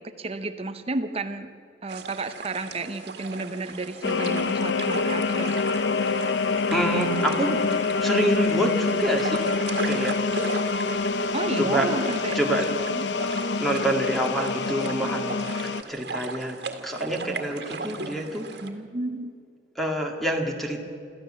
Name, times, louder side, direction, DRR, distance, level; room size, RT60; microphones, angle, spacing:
voice 1, 0.0-1.5 1.8-5.6 11.3-13.2 18.6-19.3, right 2 dB, 35° right, 9 dB, 0.8 m, -32 dB
sound 1, 1.9-18.7, right 4 dB, 65° right, 1.9 m, -38 dB
sound 2, 4.0-15.8, left 4 dB, 75° left, 0.8 m, -26 dB
voice 2, 6.7-7.6 8.0-9.5 9.8-10.2 11.6-12.0 12.4-12.7 13.6-16.6 16.8-18.5 19.8-20.8, right 1 dB, ahead, 1 dB, 2.0 m, -26 dB
26.5 x 14.5 x 7.6 m, 2.4 s
head